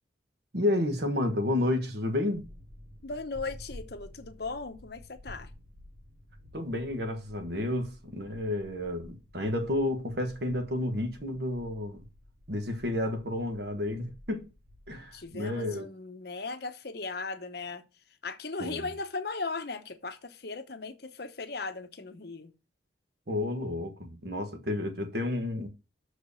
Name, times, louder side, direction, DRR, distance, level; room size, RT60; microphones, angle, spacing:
voice 1, 0.5-2.5 6.5-12.0 12.5-14.5 14.9-15.8 18.6-18.8 23.3-25.7, left 1 dB, 55° right, 1.5 m, -31 dB
sound 1, 2.3-15.3, left 1 dB, 80° right, 2.8 m, -52 dB
voice 2, 3.0-5.5 15.1-17.8 18.2-22.5, left 3 dB, 55° left, 0.9 m, -37 dB
6.5 x 4.9 x 6.8 m
head